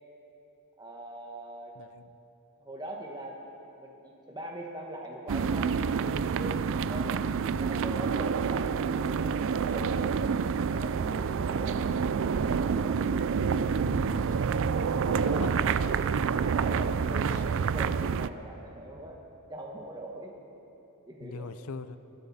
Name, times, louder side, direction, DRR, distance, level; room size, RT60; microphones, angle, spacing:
voice 1, 0.8-1.8 2.6-3.5 3.8-7.2 7.6-8.8 9.0-10.0 10.7-13.1 14.8-19.2 19.5-20.3 21.1-21.5, right 1 dB, 20° right, 0 dB, 1.3 m, -42 dB
sound 1, 5.3-18.3, right 6 dB, 65° right, 0.4 m, -28 dB
voice 2, 13.8-14.4 15.2-15.6 21.2-22.0, left 4 dB, 75° left, 13 dB, 0.6 m, -40 dB
24.0 x 13.0 x 4.2 m, 3.0 s
head